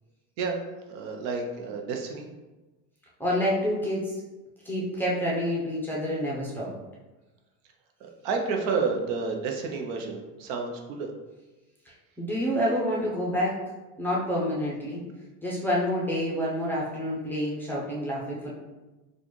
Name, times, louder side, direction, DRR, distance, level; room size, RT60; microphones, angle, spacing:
voice 1, 0.9-2.3 8.0-11.1, right 4 dB, 60° right, 2 dB, 0.7 m, -30 dB
voice 2, 3.2-4.2 4.6-6.7 12.2-13.6 14.0-15.0 15.4-18.5, equal, 5° left, -6 dB, 0.6 m, -28 dB
4.0 x 2.5 x 3.1 m, 1.1 s
supercardioid pair, 130°, 46 cm